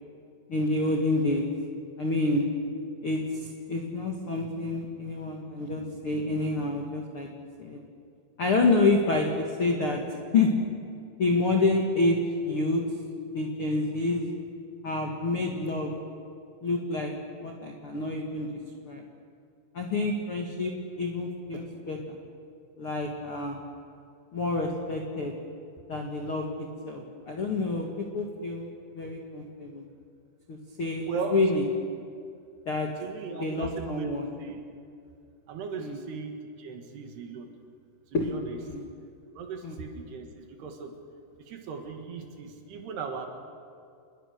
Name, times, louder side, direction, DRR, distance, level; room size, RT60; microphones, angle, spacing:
voice 1, 0.5-1.5 2.0-2.5 3.0-7.3 7.6-7.8 8.4-10.0 10.3-10.5 11.2-12.8 13.3-14.2 14.8-15.9 16.6-17.1 17.4-18.6 18.8-19.0 19.7-22.2 22.8-23.6 24.3-25.3 25.9-26.4 26.8-28.7 28.9-29.8 30.5-31.6 32.6-32.9 33.4-34.3 35.8-36.0 38.1-38.3 38.6-38.8 39.6-39.8, left 2 dB, 70° left, 1 dB, 1.3 m, -28 dB
voice 2, 31.1-31.4 33.0-34.1 34.4-34.6 35.5-37.5 38.2-38.6 39.3-41.0 41.5-43.3, right 5 dB, 65° right, 4 dB, 3.5 m, -37 dB
28.5 x 21.5 x 6.7 m, 2.4 s
omnidirectional pair, 5.7 m